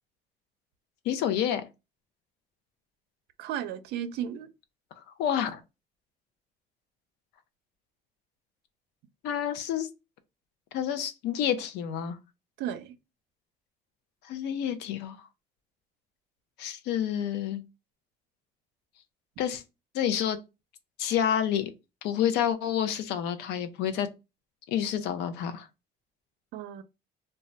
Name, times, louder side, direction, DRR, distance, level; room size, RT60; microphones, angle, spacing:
voice 1, 1.1-1.6 5.2-5.6 9.2-9.9 10.7-12.2 14.2-15.3 16.6-17.6 19.4-19.6 19.9-20.4 21.0-21.7 22.0-24.1 24.7-25.7, left 9 dB, 85° left, 0.5 m, -29 dB
voice 2, 3.4-4.5 12.6-13.0 26.5-26.8, right 10 dB, 85° right, 0.4 m, -34 dB
2.2 x 2.1 x 3.8 m
cardioid pair, 110°, 17 cm